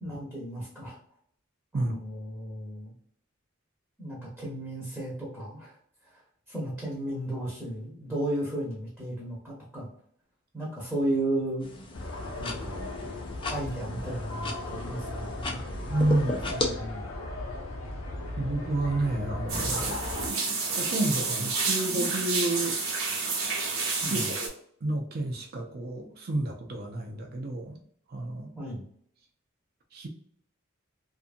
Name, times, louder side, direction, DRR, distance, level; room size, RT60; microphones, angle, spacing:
voice 1, 0.0-1.0 1.7-2.9 4.0-5.7 6.5-9.9 10.5-11.7 12.0-12.1 12.4-12.9 13.5-15.8 16.5-17.1 24.0-24.4 28.5-28.8, right 1 dB, ahead, -5 dB, 0.9 m, -34 dB
sound 1, 11.6-16.7, left 2 dB, 25° left, 0.5 m, -36 dB
sound 2, 11.9-20.3, left 2 dB, 80° left, 0.7 m, -37 dB
voice 2, 15.9-16.4 18.4-20.0 20.8-22.8 24.0-24.5 24.8-27.8 28.1-28.5 29.9-30.1, right 2 dB, 50° right, 2 dB, 0.5 m, -30 dB
sound 3, 19.5-24.5, right 4 dB, 80° right, 1.0 m, -29 dB
2.7 x 2.6 x 2.5 m, 0.63 s
head